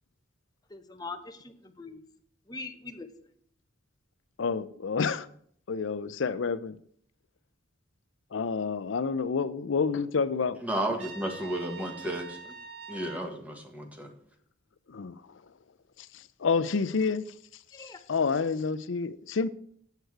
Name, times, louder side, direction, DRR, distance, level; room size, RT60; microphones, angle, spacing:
voice 1, 0.7-2.0 2.5-3.1 17.7-18.0, left 3 dB, 20° left, 0.8 m, -42 dB
voice 2, 4.4-5.3 5.7-6.8 8.3-10.6 14.9-15.2 16.4-17.3 18.1-19.5, left 5 dB, 70° left, 0.5 m, -28 dB
voice 3, 10.6-12.5 12.9-14.1, right 1 dB, 10° right, 1.4 m, -33 dB
Trumpet, 11.0-13.3, right 6 dB, 85° right, 1.6 m, -44 dB
8.1 x 7.9 x 4.7 m
head